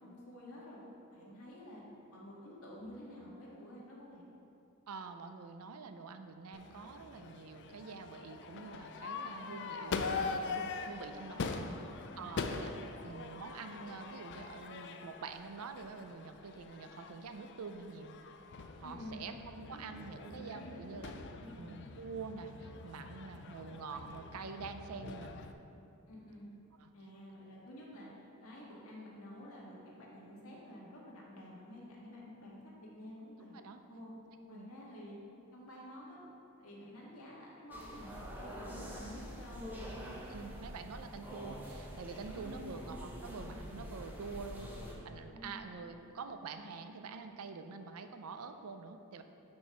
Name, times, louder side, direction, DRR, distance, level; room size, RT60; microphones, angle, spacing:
voice 1, 0.0-0.8 1.1-1.8 2.1-4.3 9.2-9.7 11.4-11.8 12.1-12.4 18.8-19.2 19.6-19.8 20.1-21.0 21.4-21.7 26.1-26.5 26.9-28.1 28.4-33.6 33.9-34.1 34.5-35.2 35.5-36.2 36.6-40.0 42.4-43.2 45.3-45.7, left 1 dB, 75° left, -5 dB, 1.7 m, -50 dB
voice 2, 4.9-11.5 12.2-12.7 13.0-18.1 18.8-21.1 21.6-25.4 26.8-26.9 33.5-33.8 34.5-34.7 40.3-49.2, right 4 dB, 75° right, 8 dB, 0.5 m, -46 dB
Crowd / Fireworks, 6.5-25.5, left 4 dB, 55° left, 0.4 m, -43 dB
sound 1, 37.7-45.0, equal, 10° right, 0.9 m, -46 dB
6.1 x 4.5 x 6.0 m, 2.7 s
head